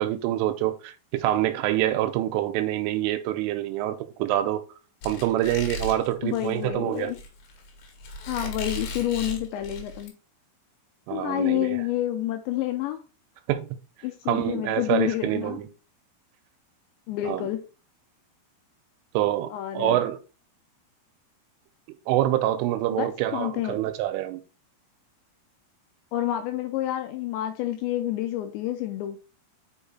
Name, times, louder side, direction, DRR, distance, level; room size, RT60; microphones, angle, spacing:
voice 1, 0.0-4.6 5.0-7.1 11.1-11.8 13.5-13.8 14.3-15.7 17.2-17.5 19.1-19.5 19.7-20.2 22.1-24.4, right 13 dB, 90° right, 3.3 m, -26 dB
Squeak, 5.0-10.1, left 2 dB, 65° left, 4.2 m, -36 dB
voice 2, 6.2-7.2 8.3-10.1 11.1-13.0 14.0-15.6 17.1-17.6 19.5-20.0 22.9-23.8 26.1-29.2, left 13 dB, 85° left, 2.7 m, -29 dB
7.2 x 5.6 x 4.3 m
omnidirectional pair, 5.7 m